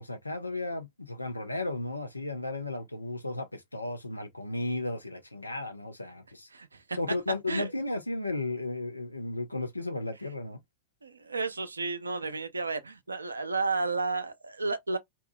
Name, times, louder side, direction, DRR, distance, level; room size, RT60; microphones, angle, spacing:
voice 1, 0.0-6.5 7.0-10.6, left 2 dB, 85° left, 0.4 m, -34 dB
voice 2, 6.5-7.0 7.5-7.7 11.0-15.0, right 3 dB, 80° right, 0.4 m, -32 dB
2.7 x 2.2 x 2.5 m
figure-of-eight pair, 90°, 0 cm